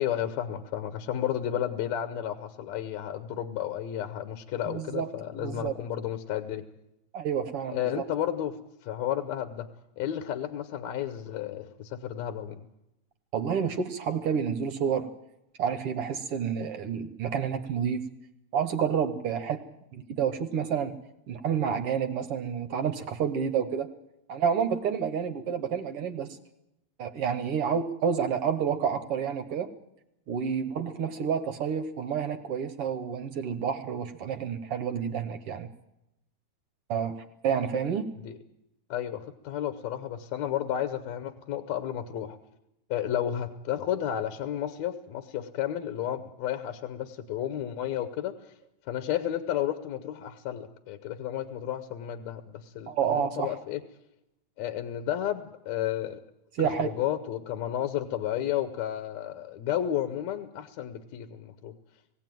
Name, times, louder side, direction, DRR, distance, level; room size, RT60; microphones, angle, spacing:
voice 1, 0.0-6.6 7.7-8.6 8.8-9.7 10.0-12.6 38.2-38.4 38.9-42.4 42.9-48.5 48.9-53.8 54.6-56.2 56.6-61.7, left 11 dB, 75° left, 10 dB, 2.1 m, -32 dB
voice 2, 4.7-5.1 5.3-5.7 7.1-8.0 13.3-15.1 15.6-18.1 18.5-19.6 19.9-21.0 21.3-23.9 24.3-26.4 27.0-29.7 30.3-35.7 36.9-38.0 52.9-53.5 56.6-56.9, right 7 dB, 65° right, 9 dB, 1.6 m, -29 dB
20.5 x 16.5 x 9.2 m, 0.88 s
omnidirectional pair, 3.3 m